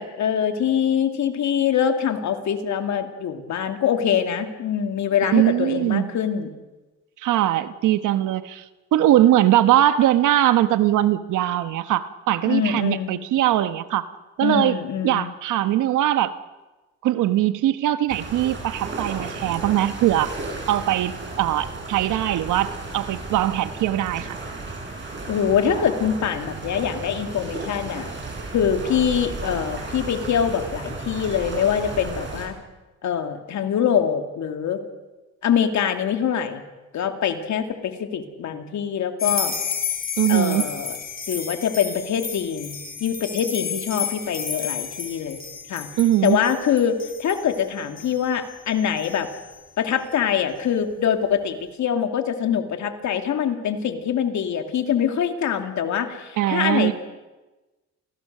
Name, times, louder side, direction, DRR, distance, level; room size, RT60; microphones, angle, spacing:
voice 1, 0.0-6.5 12.4-13.2 14.4-15.3 25.3-28.1 28.5-32.6 33.0-34.8 35.4-36.6 36.9-39.5 40.3-41.0 41.3-45.4 45.7-45.9 46.2-49.3 49.8-56.9, left 8 dB, 70° left, 6 dB, 2.5 m, -24 dB
voice 2, 5.3-6.1 7.2-8.6 8.9-14.1 14.4-14.8 15.0-16.3 17.0-20.3 20.7-24.4 40.2-40.7 46.0-46.4 56.4-56.9, right 13 dB, 85° right, 12 dB, 1.2 m, -21 dB
sound 1, 18.1-32.5, right 3 dB, 40° right, 7.8 m, -34 dB
sound 2, 39.2-49.6, left 7 dB, 30° left, 3.3 m, -31 dB
28.5 x 17.5 x 6.7 m, 1.1 s
cardioid pair, 90°, 30 cm